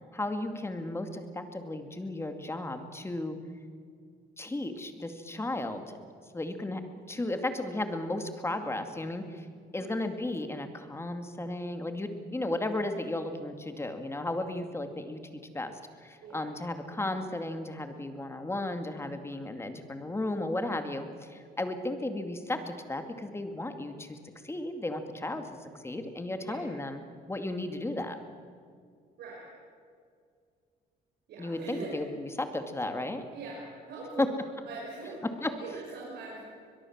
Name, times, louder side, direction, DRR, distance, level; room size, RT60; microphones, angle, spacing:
voice 1, 0.1-3.4 4.4-6.0 6.3-6.8 7.1-9.5 9.7-15.2 15.5-24.2 24.4-27.0 27.3-28.2 31.4-33.3 34.2-34.3 35.1-35.5, left 2 dB, 15° left, 7 dB, 2.3 m, -34 dB
voice 2, 31.3-31.9 33.3-34.3 34.6-35.2 35.6-36.4, right 4 dB, 75° right, -4 dB, 6.4 m, -42 dB
22.5 x 22.0 x 7.4 m, 2.2 s
cardioid pair, 115°, 17 cm